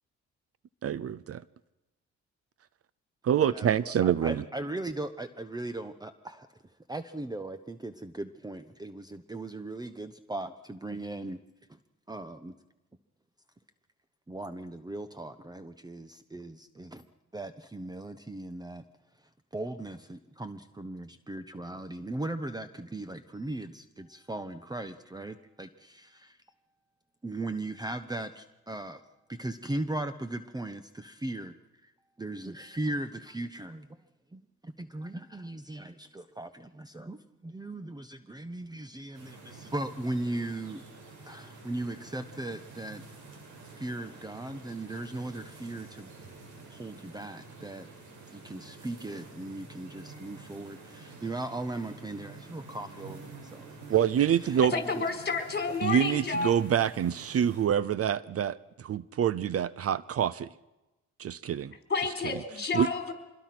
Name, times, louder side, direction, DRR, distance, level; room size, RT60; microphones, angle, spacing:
voice 1, 0.8-1.4 3.2-4.4 53.9-54.7 55.8-60.5 61.2-61.7 62.7-62.9, right 9 dB, 50° right, 0.7 m, -26 dB
voice 2, 3.4-3.7 4.0-6.5 6.9-11.4 12.1-12.5 14.3-17.0 17.3-18.8 19.5-26.4 27.2-29.0 29.3-31.5 31.8-31.9 32.2-33.9 34.3-40.8 41.2-43.0 43.8-46.1 46.7-47.9 48.3-53.7 54.4-54.8, right 2 dB, 15° right, 1.1 m, -38 dB
sound 1, 39.1-57.7, right 3 dB, 80° right, 6.7 m, -49 dB
voice 3, 54.7-56.5 61.9-63.1, left 4 dB, 35° left, 4.2 m, -30 dB
25.5 x 21.0 x 6.1 m
cardioid pair, 90°, 30 cm